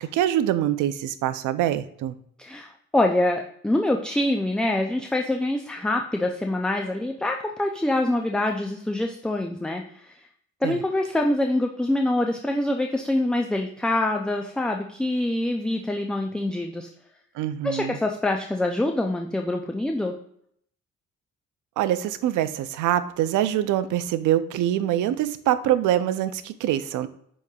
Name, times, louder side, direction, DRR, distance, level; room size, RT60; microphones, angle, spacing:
voice 1, 0.0-2.1 10.6-10.8 17.4-18.0 21.8-27.1, right 12 dB, 80° right, 13 dB, 0.5 m, -24 dB
voice 2, 2.4-10.2 10.6-16.9 17.6-20.1, left 1 dB, 5° left, 3 dB, 0.3 m, -25 dB
7.1 x 3.0 x 2.3 m, 0.68 s
cardioid pair, 90°, 30 cm